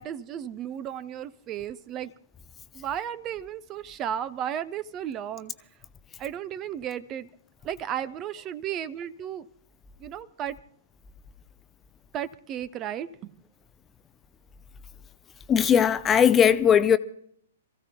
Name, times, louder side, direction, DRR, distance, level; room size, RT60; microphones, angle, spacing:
voice 1, 0.0-2.1 2.7-5.5 6.2-7.3 7.6-9.5 10.0-10.6 12.1-13.4, right 10 dB, 25° right, 0.6 m, -34 dB
voice 2, 15.5-17.0, left 8 dB, 20° left, 0.6 m, -19 dB
28.0 x 15.5 x 2.2 m
figure-of-eight pair, 115°, 0 cm